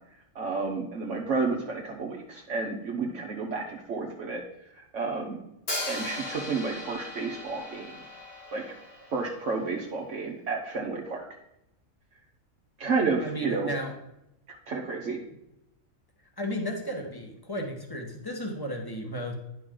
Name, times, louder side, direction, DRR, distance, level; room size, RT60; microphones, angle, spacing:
voice 1, 0.3-4.4 4.9-5.4 5.9-8.0 8.5-8.6 9.1-11.2 12.8-13.7 14.7-15.2, right 4 dB, 65° right, -1 dB, 1.3 m, -31 dB
Hi-hat, 5.7-9.6, left 1 dB, 50° left, 1.9 m, -38 dB
voice 2, 13.2-13.9 16.4-19.3, equal, 15° left, 1 dB, 1.4 m, -34 dB
10.5 x 5.4 x 3.8 m, 0.85 s
omnidirectional pair, 1.4 m